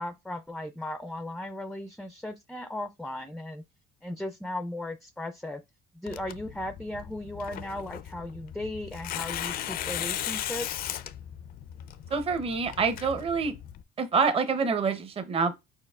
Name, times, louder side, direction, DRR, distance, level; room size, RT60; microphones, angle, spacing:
voice 1, 0.0-3.6 4.0-5.6 5.9-10.9, left 1 dB, ahead, 0.4 m, -36 dB
Tearing, 6.1-13.8, left 11 dB, 60° left, 0.4 m, -37 dB
voice 2, 12.1-13.5 14.0-15.5, right 5 dB, 35° right, 0.7 m, -26 dB
4.8 x 4.5 x 2.3 m
cardioid pair, 110°, 17 cm